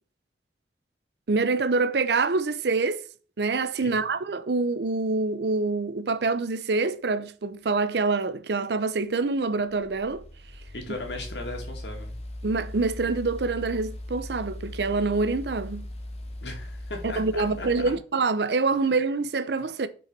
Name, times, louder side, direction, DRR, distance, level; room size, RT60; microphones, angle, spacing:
voice 1, 1.3-3.0 3.4-10.2 12.4-15.9 17.0-19.9, right 3 dB, 75° right, 0.6 m, -26 dB
sound 1, 8.2-18.0, left 1 dB, 35° left, 1.0 m, -39 dB
voice 2, 10.7-12.2 16.4-17.7, left 2 dB, 85° left, 2.2 m, -37 dB
5.8 x 4.7 x 5.3 m
head